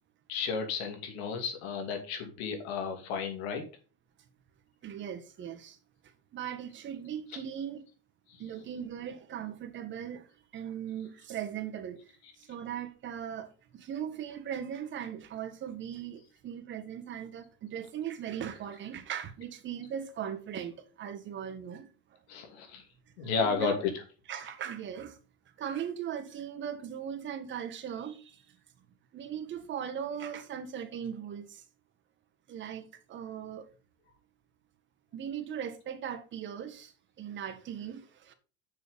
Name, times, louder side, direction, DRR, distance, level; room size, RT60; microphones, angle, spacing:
voice 1, 0.3-3.7 8.3-8.4 22.3-22.8 23.2-24.0, left 5 dB, 80° left, 2.8 m, -33 dB
voice 2, 4.8-5.8 6.3-7.8 8.4-10.3 10.5-12.0 12.5-13.5 13.7-21.9 23.4-23.8 24.3-25.2 25.6-28.4 29.1-31.6 32.5-33.7 35.1-36.9 37.2-38.3, right 9 dB, 35° right, 1.7 m, -39 dB
7.0 x 6.2 x 5.3 m
supercardioid pair, 130°, 31 cm